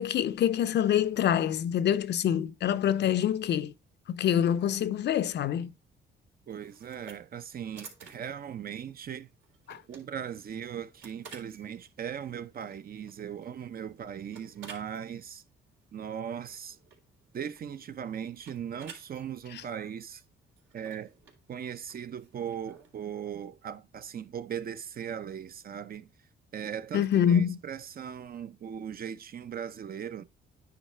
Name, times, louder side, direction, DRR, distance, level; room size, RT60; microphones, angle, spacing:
voice 1, 0.0-3.7 4.1-5.7 9.7-9.8 19.5-19.6 26.9-27.6, left 9 dB, 60° left, 0.5 m, -26 dB
voice 2, 6.5-9.3 9.9-15.4 15.9-16.8 17.3-20.2 20.7-21.1 21.5-26.1 26.5-30.2, right 8 dB, 50° right, 0.6 m, -38 dB
sound 1, 6.5-23.0, right 5 dB, 75° right, 3.2 m, -54 dB
9.5 x 3.9 x 4.3 m
cardioid pair, 90°, 20 cm